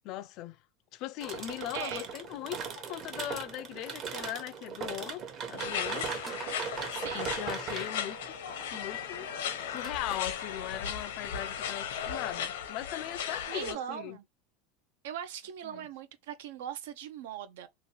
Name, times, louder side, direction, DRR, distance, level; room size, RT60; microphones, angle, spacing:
voice 1, 0.0-0.6 0.9-6.5 7.1-8.3 8.7-9.3 9.7-14.2 15.6-15.9, left 14 dB, 55° left, 0.3 m, -39 dB
sound 1, 1.2-9.9, right 7 dB, 45° right, 0.9 m, -39 dB
voice 2, 1.6-2.1 6.9-7.3 13.5-14.2 15.0-17.7, right 9 dB, 80° right, 0.6 m, -40 dB
sound 2, 5.6-13.7, left 8 dB, 85° left, 0.7 m, -36 dB
sound 3, 6.3-6.6 7.8-8.1 9.8-10.4, right 4 dB, 20° right, 0.3 m, -48 dB
3.0 x 2.4 x 2.7 m
supercardioid pair, 110°, 0 cm